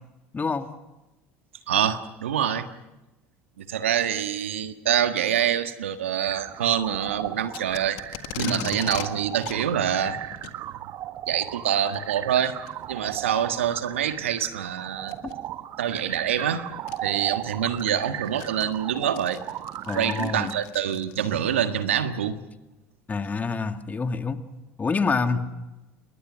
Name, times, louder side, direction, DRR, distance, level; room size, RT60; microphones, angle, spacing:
voice 1, 0.3-0.7 8.5-8.7 19.9-20.5 23.1-24.4 24.8-25.4, left 4 dB, 25° left, 7 dB, 2.3 m, -27 dB
voice 2, 1.7-2.7 3.6-8.0 8.4-10.2 11.3-12.6 12.9-15.1 15.8-16.7 17.0-19.4 19.9-22.4 25.3-25.5, right 9 dB, 85° right, 9 dB, 1.5 m, -26 dB
sound 1, 6.2-20.6, right 13 dB, 55° right, 1.1 m, -36 dB
Packing tape duct tape, 7.5-9.1 9.4-9.6 10.3-10.6 11.7-12.0 12.7-12.8 13.4-13.5 15.0-15.3 16.4-16.5 16.9-17.0 17.5-21.4, left 16 dB, 70° left, 1.7 m, -38 dB
28.5 x 22.5 x 6.2 m, 0.99 s
hypercardioid pair, 70°, 7 cm